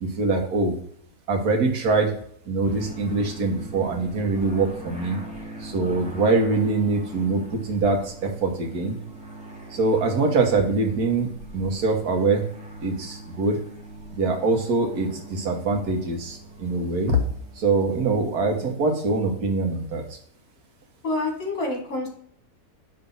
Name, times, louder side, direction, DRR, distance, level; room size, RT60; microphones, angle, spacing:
voice 1, 0.0-0.8 1.3-2.1 2.5-5.2 5.6-8.9 9.7-12.5 12.8-13.6 14.1-17.2 17.6-20.0, right 3 dB, 80° right, 2 dB, 1.7 m, -23 dB
sound 1, 2.6-18.4, right 1 dB, 5° right, 1.1 m, -41 dB
voice 2, 21.0-22.1, left 2 dB, 60° left, 1 dB, 2.1 m, -27 dB
5.4 x 3.4 x 5.3 m, 0.64 s
omnidirectional pair, 1.6 m